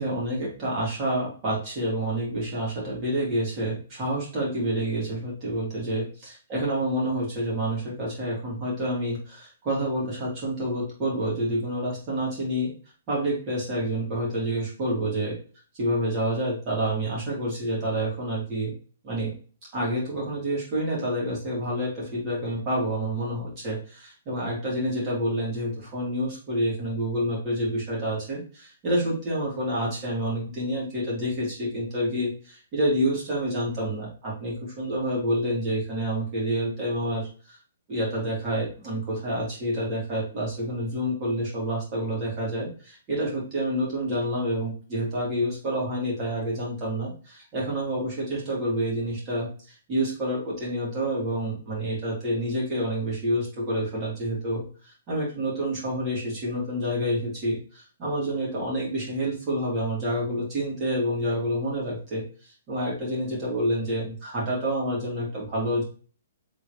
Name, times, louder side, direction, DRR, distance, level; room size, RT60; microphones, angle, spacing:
voice 1, 0.0-12.7 13.1-15.3 15.8-18.7 19.0-19.3 19.7-37.3 37.9-65.8, right 1 dB, 25° right, -4 dB, 2.2 m, -28 dB
4.0 x 3.6 x 3.1 m, 0.39 s
hypercardioid pair, 170°, 0 cm